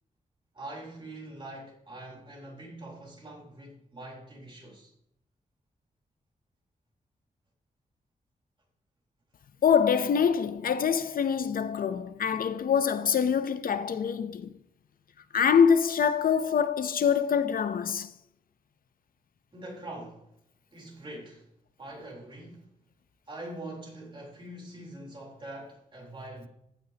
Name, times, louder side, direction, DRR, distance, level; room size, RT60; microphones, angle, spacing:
voice 1, 0.5-4.9 19.5-20.3 20.7-21.5 21.8-22.7 23.3-26.5, right 1 dB, 35° right, 3.7 m, -43 dB
voice 2, 9.6-14.5 15.3-18.1, left 7 dB, 75° left, 0.7 m, -25 dB
15.0 x 9.1 x 2.9 m
wide cardioid pair, 165°, 15 cm